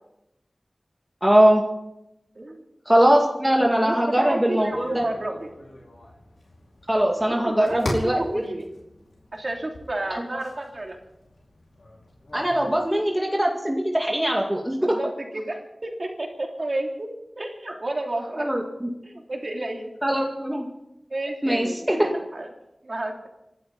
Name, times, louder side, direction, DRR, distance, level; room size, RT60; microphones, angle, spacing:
voice 1, 1.2-1.6 2.9-5.0 6.9-8.4 10.1-10.2 12.3-14.8 18.4-18.9 20.0-20.7 21.4-22.1, right 1 dB, 10° right, 0 dB, 2.1 m, -21 dB
voice 2, 3.8-5.5 7.3-8.7 9.3-11.0 14.7-18.5 19.0-19.9 21.1-22.5 22.8-23.3, right 1 dB, 55° right, 1 dB, 3.2 m, -31 dB
sound 1, 4.7-12.9, left 1 dB, 85° left, 4.9 m, -40 dB
26.5 x 12.0 x 4.2 m, 0.88 s
wide cardioid pair, 45°, 0 cm